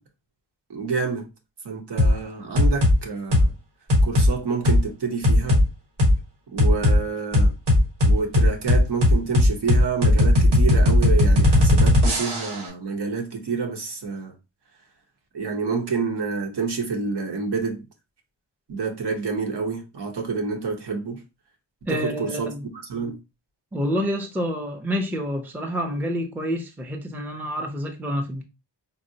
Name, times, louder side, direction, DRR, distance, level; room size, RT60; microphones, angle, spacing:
voice 1, 0.7-1.3 1.6-3.5 4.0-5.6 6.5-7.5 8.0-14.3 15.3-17.8 18.7-21.2 21.9-23.1, right 5 dB, 60° right, 0.9 m, -28 dB
sound 1, 2.0-2.2 2.6-3.0 3.3-3.5 3.9-4.3 4.7-4.8 5.2-5.6 6.0-6.1 6.6-7.0 7.3-12.6, left 1 dB, 85° right, 1.4 m, -17 dB
voice 2, 21.9-22.7 23.7-28.4, equal, 5° right, 0.5 m, -28 dB
3.8 x 2.0 x 2.6 m
cardioid pair, 80°, 46 cm